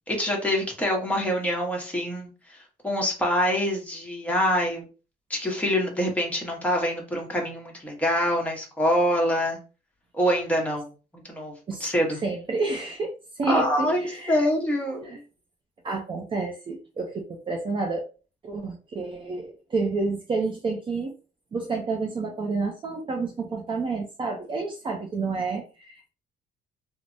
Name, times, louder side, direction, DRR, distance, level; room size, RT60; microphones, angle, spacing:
voice 1, 0.0-2.6 2.8-4.9 5.3-9.6 10.2-11.5 11.8-12.2 13.5-15.2, equal, 10° left, -1 dB, 1.0 m, -25 dB
voice 2, 12.2-14.5 15.0-15.2 15.8-18.1 18.4-21.1 21.5-26.1, right 3 dB, 30° right, 1 dB, 0.5 m, -29 dB
3.2 x 2.0 x 2.6 m, 0.34 s
cardioid pair, 110°, 17 cm